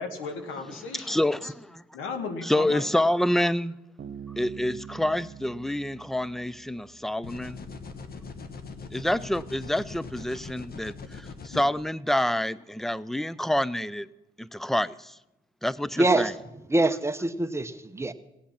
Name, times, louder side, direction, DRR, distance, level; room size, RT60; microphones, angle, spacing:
voice 1, 0.0-1.5 1.9-2.9 11.5-11.6, left 4 dB, 85° left, 1.5 m, -36 dB
voice 2, 0.9-1.8 2.4-3.7 4.4-7.6 8.9-14.1 14.4-15.2 15.6-16.3, left 1 dB, ahead, 0.4 m, -27 dB
Bass guitar, 4.0-7.5, right 8 dB, 60° right, 1.0 m, -44 dB
sound 1, 7.2-11.6, left 4 dB, 50° left, 1.2 m, -41 dB
voice 3, 16.0-18.1, right 2 dB, 15° right, 0.8 m, -25 dB
17.5 x 8.3 x 5.8 m
cardioid pair, 90°, 20 cm